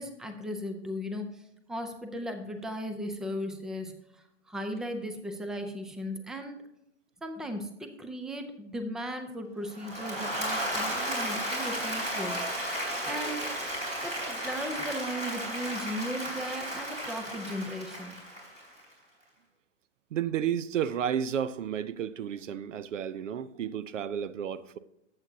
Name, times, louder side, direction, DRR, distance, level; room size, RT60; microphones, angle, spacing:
voice 1, 0.0-1.4 1.7-6.6 7.2-12.4 13.0-13.5 14.0-18.1, equal, ahead, 0.5 m, -37 dB
Applause / Crowd, 9.7-18.9, right 1 dB, 20° right, 3.6 m, -34 dB
voice 2, 20.1-24.8, right 9 dB, 85° right, 0.7 m, -32 dB
11.5 x 7.9 x 2.7 m
hypercardioid pair, 130°, 36 cm